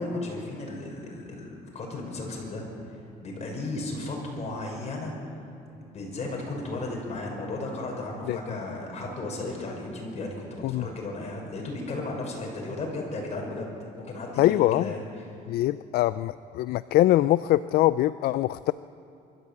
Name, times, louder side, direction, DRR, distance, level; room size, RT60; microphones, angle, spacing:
voice 1, 0.0-5.1 5.9-13.7 14.0-15.0, left 2 dB, 40° left, 0 dB, 6.3 m, -34 dB
voice 2, 14.4-14.9 15.5-18.7, left 15 dB, 65° left, 15 dB, 0.4 m, -23 dB
24.0 x 14.0 x 8.7 m, 2.6 s
cardioid pair, 110°, 17 cm